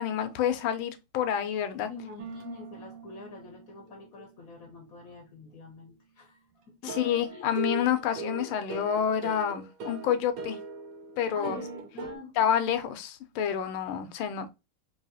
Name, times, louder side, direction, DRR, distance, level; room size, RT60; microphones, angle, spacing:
voice 1, 0.0-1.9 7.0-10.6 11.2-11.6 12.4-14.5, left 9 dB, 80° left, 1.4 m, -28 dB
voice 2, 1.9-7.5 11.3-12.3, left 4 dB, 55° left, 1.0 m, -46 dB
sound 1, 2.2-4.1 6.9-12.2, right 4 dB, 70° right, 1.6 m, -40 dB
4.7 x 2.9 x 2.7 m
omnidirectional pair, 2.4 m